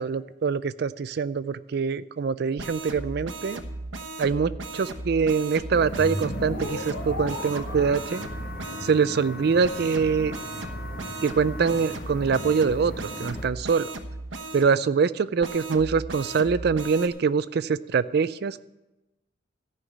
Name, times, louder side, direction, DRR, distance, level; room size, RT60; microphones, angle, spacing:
voice 1, 0.0-3.6 4.2-8.3 8.8-10.3 11.2-12.9 13.2-13.9 14.5-18.7, right 5 dB, 55° right, 16 dB, 0.4 m, -24 dB
sound 1, 2.6-8.9 9.6-14.7 15.4-17.1, right 2 dB, 80° right, 1.1 m, -36 dB
sound 2, 5.7-13.5, left 1 dB, 50° left, 1.5 m, -39 dB
sound 3, 6.0-11.7, left 1 dB, 90° left, 3.1 m, -38 dB
14.0 x 5.6 x 8.4 m, 0.98 s
head